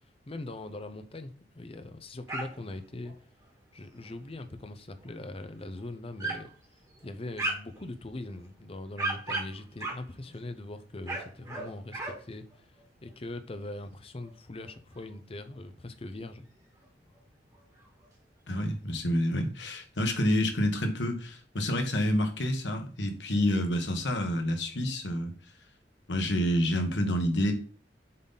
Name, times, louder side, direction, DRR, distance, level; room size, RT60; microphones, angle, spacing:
voice 1, 0.3-3.1 3.7-6.5 7.0-12.7 13.0-16.4, left 2 dB, 35° left, 0.7 m, -41 dB
sound 1, 2.3-2.8 3.0-3.1 3.8-4.3 5.0-5.1 5.6-5.7 6.2-6.5 6.9-7.8 8.4-10.5 10.9-12.2 12.5-12.8 13.1-13.2 13.5-13.6 14.2-15.1 15.4-15.5 15.8-15.9 16.8-16.9 17.1-17.2 17.4-18.1, right 2 dB, 20° right, 2.4 m, -36 dB
voice 2, 18.5-25.3 26.1-27.5, equal, 90° left, 1.3 m, -28 dB
7.4 x 4.0 x 4.0 m
head